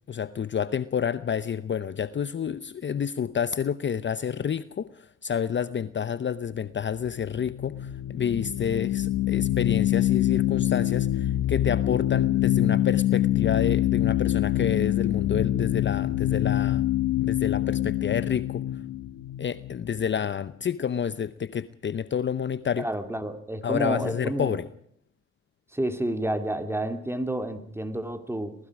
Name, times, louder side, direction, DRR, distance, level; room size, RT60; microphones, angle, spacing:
voice 1, 0.1-16.8 17.2-18.6 19.4-22.9 23.6-24.7, left 7 dB, 40° left, 14 dB, 0.8 m, -29 dB
sound 1, 7.0-20.3, left 13 dB, 80° left, 1.4 m, -25 dB
voice 2, 22.8-24.6 25.7-28.5, right 1 dB, 10° right, 9 dB, 2.5 m, -30 dB
27.0 x 19.5 x 4.9 m, 0.63 s
cardioid pair, 90°, 30 cm